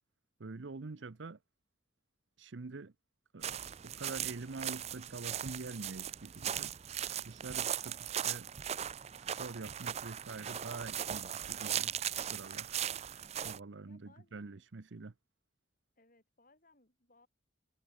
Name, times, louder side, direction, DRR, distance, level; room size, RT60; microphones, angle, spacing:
voice 1, 0.4-1.4 2.4-2.9 3.3-6.7 7.2-8.5 9.4-11.9 12.3-12.7 13.4-15.1, right 3 dB, 75° right, 0.8 m, -45 dB
sound 1, 3.4-13.6, right 10 dB, 35° right, 0.5 m, -38 dB
voice 2, 13.9-14.6 16.0-17.3, left 2 dB, 45° left, 7.8 m, -67 dB
head